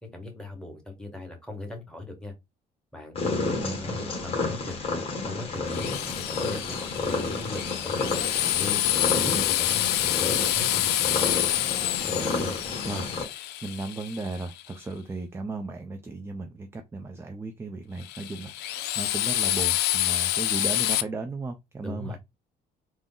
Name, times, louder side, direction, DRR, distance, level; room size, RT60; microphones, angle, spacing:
voice 1, 0.0-2.3 2.9-4.8 5.2-8.0 8.4-10.9 21.8-22.2, left 2 dB, 5° left, 1.3 m, -40 dB
Purr, 3.2-13.3, left 3 dB, 35° left, 1.3 m, -31 dB
voice 2, 3.5-4.3 9.1-9.4 12.1-12.6 12.9-22.2, right 3 dB, 15° right, 0.4 m, -36 dB
Drill, 5.7-14.6 18.0-21.0, left 14 dB, 80° left, 0.4 m, -27 dB
3.7 x 2.0 x 3.7 m
cardioid pair, 110°, 17 cm